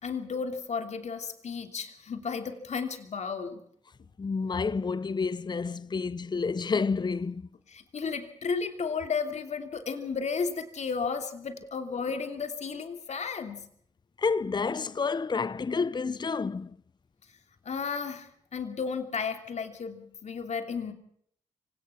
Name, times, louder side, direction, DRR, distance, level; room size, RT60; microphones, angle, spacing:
voice 1, 0.0-3.6 7.7-13.6 17.6-20.9, left 5 dB, 60° left, 2.9 m, -33 dB
voice 2, 4.2-7.4 14.2-16.7, left 4 dB, 35° left, 0.7 m, -29 dB
25.0 x 17.5 x 6.0 m
supercardioid pair, 45°, 13 cm